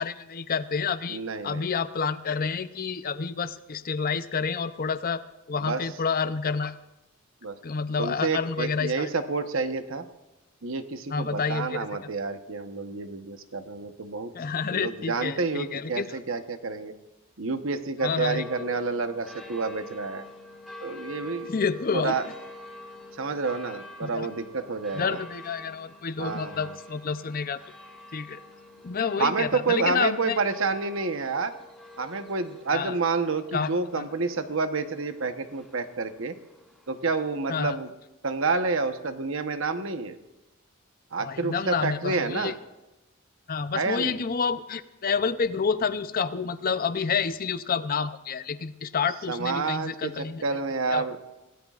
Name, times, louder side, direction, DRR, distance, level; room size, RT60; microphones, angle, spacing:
voice 1, 0.0-5.2 5.5-6.8 7.6-9.1 11.1-11.9 14.3-16.1 18.0-18.4 21.5-22.2 24.0-24.3 24.9-27.6 28.1-28.4 28.8-30.4 32.7-33.0 33.5-34.0 37.5-37.8 41.2-42.5 43.5-50.4 50.9-51.1, left 5 dB, 45° left, 12 dB, 0.6 m, -29 dB
voice 2, 1.1-1.6 5.6-5.8 7.4-7.5 8.0-10.1 10.6-14.3 14.7-16.9 17.4-20.2 20.8-21.5 21.9-22.2 23.2-25.2 26.2-26.7 29.2-31.5 32.0-36.4 36.9-37.9 38.2-40.2 41.1-42.5 43.7-44.2 49.3-51.2, right 4 dB, 65° right, 8 dB, 1.1 m, -29 dB
sound 1, 18.0-37.4, left 2 dB, ahead, 4.8 m, -47 dB
25.5 x 17.0 x 2.5 m, 0.99 s
head